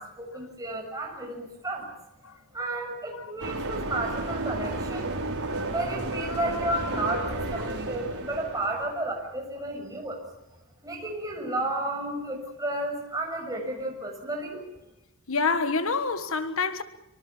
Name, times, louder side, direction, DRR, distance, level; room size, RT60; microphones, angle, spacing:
voice 1, 0.0-1.9 2.5-5.1 5.7-10.2 10.8-14.6, right 1 dB, 15° right, 6.7 m, -32 dB
sound 1, 3.4-8.9, right 2 dB, 80° right, 4.8 m, -32 dB
voice 2, 15.3-16.8, left 4 dB, 70° left, 1.4 m, -27 dB
24.5 x 24.5 x 7.1 m
head